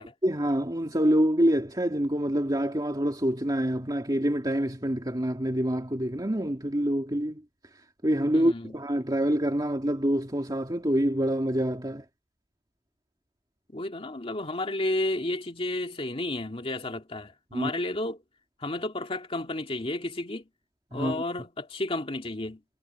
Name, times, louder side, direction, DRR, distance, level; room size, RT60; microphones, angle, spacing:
voice 1, 0.2-7.4 8.0-12.0 17.5-17.7 20.9-21.2, equal, 20° right, 2.4 m, -26 dB
voice 2, 8.3-8.8 13.7-18.2 18.6-20.5 20.9-22.6, left 2 dB, 30° left, 2.3 m, -32 dB
head